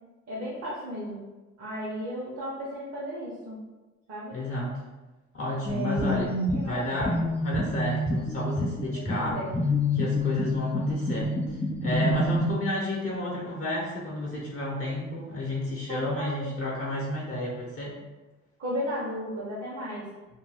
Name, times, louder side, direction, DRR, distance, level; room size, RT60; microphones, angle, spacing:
voice 1, 0.3-1.2 1.6-3.6 4.1-4.4 5.7-6.2 6.6-7.1 8.9-9.5 15.9-16.5 18.6-20.0, equal, 55° right, -7 dB, 0.9 m, -34 dB
voice 2, 4.3-4.8 5.3-9.4 9.9-11.3 11.8-18.0, left 1 dB, 45° left, -4 dB, 0.7 m, -31 dB
sound 1, 5.7-12.5, left 1 dB, 5° left, 0.3 m, -28 dB
2.6 x 2.2 x 3.3 m, 1.1 s
cardioid pair, 90°, 30 cm